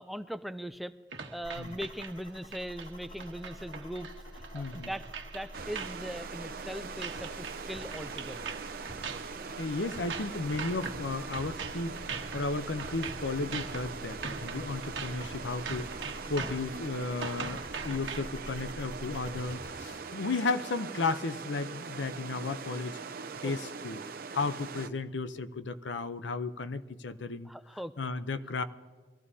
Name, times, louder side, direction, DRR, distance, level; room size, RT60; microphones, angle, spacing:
voice 1, 0.0-5.1 5.3-8.5 16.3-16.6 23.4-23.5 27.5-27.9, equal, ahead, 12 dB, 0.3 m, -40 dB
sound 1, 1.1-18.2, right 5 dB, 85° right, 1.2 m, -42 dB
sound 2, 1.4-19.7, equal, 50° left, 3.4 m, -48 dB
voice 2, 4.5-4.9 9.6-12.0 12.3-23.0 23.4-24.0 24.3-27.5 28.0-28.6, left 3 dB, 75° left, 12 dB, 0.7 m, -34 dB
sound 3, 5.5-24.9, right 5 dB, 55° right, 0.7 m, -42 dB
23.5 x 15.0 x 2.8 m, 1.5 s
head